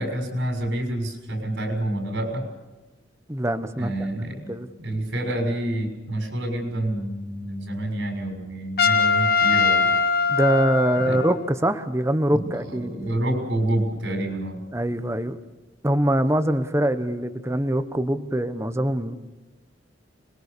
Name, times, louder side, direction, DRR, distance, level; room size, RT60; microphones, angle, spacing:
voice 1, 0.0-2.5 3.8-9.9 11.0-11.2 12.3-14.7, right 1 dB, 90° right, 3 dB, 6.4 m, -28 dB
voice 2, 3.3-4.7 10.3-12.9 14.7-15.4 15.8-19.2, right 1 dB, 15° right, 11 dB, 1.1 m, -23 dB
Trumpet, 8.8-11.5, left 5 dB, 55° left, 1.6 m, -21 dB
25.5 x 22.0 x 6.9 m, 1.1 s
head